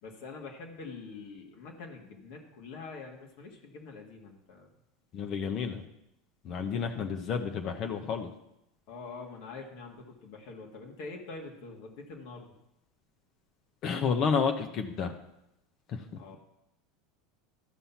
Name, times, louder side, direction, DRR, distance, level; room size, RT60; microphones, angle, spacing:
voice 1, 0.0-4.7 8.9-12.5 16.2-16.4, left 4 dB, 65° left, 0 dB, 2.2 m, -45 dB
voice 2, 5.1-5.8 6.4-8.3 13.8-15.1 15.9-16.0, left 6 dB, 50° left, 5 dB, 1.1 m, -30 dB
13.5 x 5.5 x 5.9 m, 0.85 s
hypercardioid pair, 85°, 0 cm